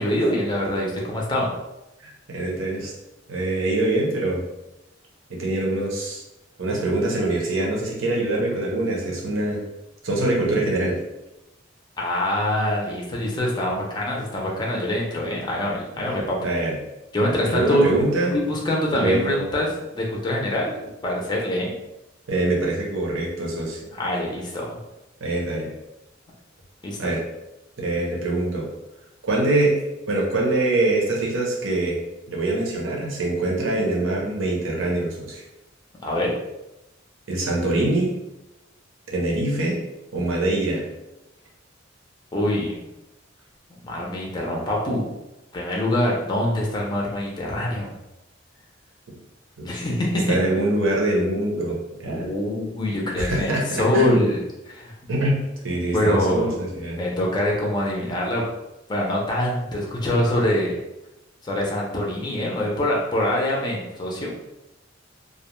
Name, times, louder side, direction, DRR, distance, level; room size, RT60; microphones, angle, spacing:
voice 1, 0.0-1.5 12.0-16.4 17.1-17.9 18.3-19.7 19.9-21.7 23.9-24.8 26.8-27.0 36.0-36.3 42.3-42.8 43.8-45.1 45.5-47.9 49.6-50.4 52.1-54.4 54.7-54.9 55.9-56.5 57.0-58.4 58.9-60.7 61.4-64.3, left 1 dB, 20° left, -2 dB, 0.4 m, -24 dB
voice 2, 2.3-2.9 3.3-4.4 5.4-6.2 6.6-9.6 10.0-11.0 16.4-16.8 17.5-18.3 19.0-19.4 22.3-23.8 25.2-25.7 27.0-27.2 27.8-28.7 29.2-29.7 30.1-32.0 32.3-35.4 37.3-38.1 39.1-39.8 40.1-40.8 49.6-49.8 50.3-51.7 52.0-52.3 53.2-54.2 55.1-55.4 55.6-57.0, right 2 dB, 80° right, -3 dB, 0.8 m, -24 dB
2.4 x 2.1 x 3.0 m, 0.94 s
head